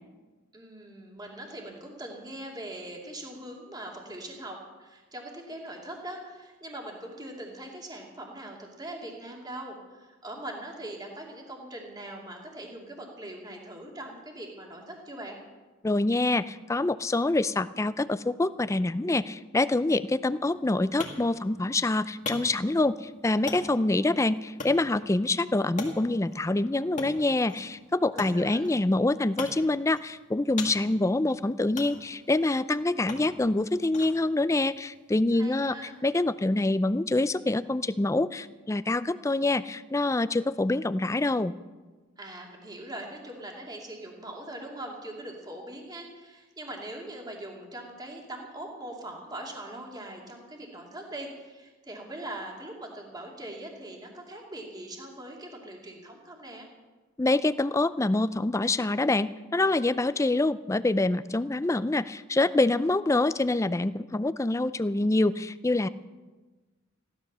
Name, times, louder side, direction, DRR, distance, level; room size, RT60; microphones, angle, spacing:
voice 1, 0.5-15.4 28.1-28.7 35.3-35.9 42.2-56.7, right 1 dB, 20° right, 0 dB, 2.6 m, -41 dB
voice 2, 15.8-35.8 36.0-41.5 57.2-65.9, left 2 dB, 15° left, 14 dB, 0.4 m, -26 dB
sound 1, 20.4-36.0, left 3 dB, 40° left, 2.0 m, -44 dB
15.5 x 12.5 x 6.7 m, 1.3 s
head